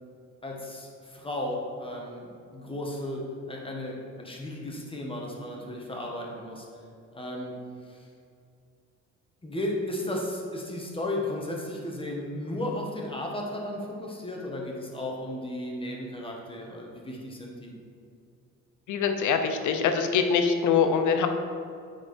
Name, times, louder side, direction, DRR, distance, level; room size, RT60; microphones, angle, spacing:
voice 1, 0.4-6.7 7.1-8.1 9.4-17.7, left 1 dB, 15° left, -1 dB, 1.5 m, -34 dB
voice 2, 18.9-21.3, left 6 dB, 80° left, 6 dB, 0.8 m, -24 dB
7.8 x 4.7 x 4.6 m, 2.4 s
cardioid pair, 90°, 30 cm